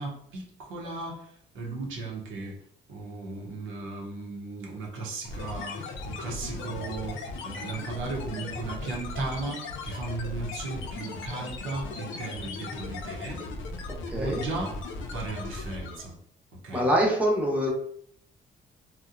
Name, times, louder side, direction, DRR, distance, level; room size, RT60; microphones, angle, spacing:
voice 1, 0.0-2.6 2.9-13.4 14.2-14.8 15.1-16.2 16.6-16.9, right 3 dB, 85° right, -1 dB, 0.8 m, -36 dB
sound 1, 5.2-16.1, left 3 dB, 75° left, 0.5 m, -37 dB
voice 2, 13.9-14.4 16.7-17.7, equal, 5° right, -2 dB, 0.8 m, -25 dB
2.8 x 2.1 x 2.4 m, 0.65 s
cardioid pair, 90°, 20 cm